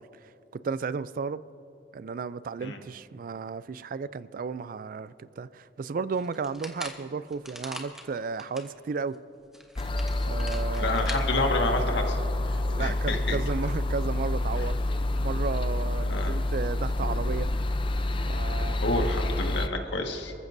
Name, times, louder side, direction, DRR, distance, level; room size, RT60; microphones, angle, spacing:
voice 1, 0.0-1.4 1.9-9.2 10.3-11.2 12.7-14.8 15.2-17.5 18.3-18.8, right 5 dB, 50° right, 17 dB, 0.3 m, -34 dB
sound 1, 6.2-8.7 9.1-9.2 9.5-11.2, equal, 5° right, 1.1 m, -42 dB
sound 2, 9.8-19.7, left 1 dB, 30° left, 0.6 m, -28 dB
voice 2, 10.7-12.2 12.4-13.4 16.1-16.4 18.8-20.3, left 2 dB, 90° left, 3 dB, 1.7 m, -29 dB
28.0 x 14.5 x 2.7 m, 2.7 s
head